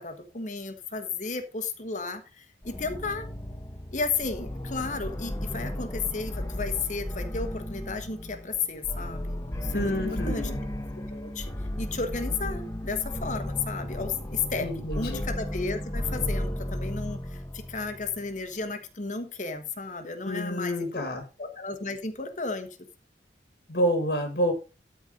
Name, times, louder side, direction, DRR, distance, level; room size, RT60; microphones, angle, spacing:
voice 1, 0.0-3.3 3.9-10.5 11.1-21.1 21.4-22.8, left 4 dB, 45° left, 7 dB, 1.3 m, -33 dB
sound 1, 2.6-18.3, left 1 dB, 15° left, 1.1 m, -34 dB
voice 2, 9.7-10.6 14.6-15.2 20.2-21.2 23.7-24.5, equal, 60° left, 7 dB, 1.9 m, -28 dB
13.0 x 4.5 x 5.2 m, 0.30 s
head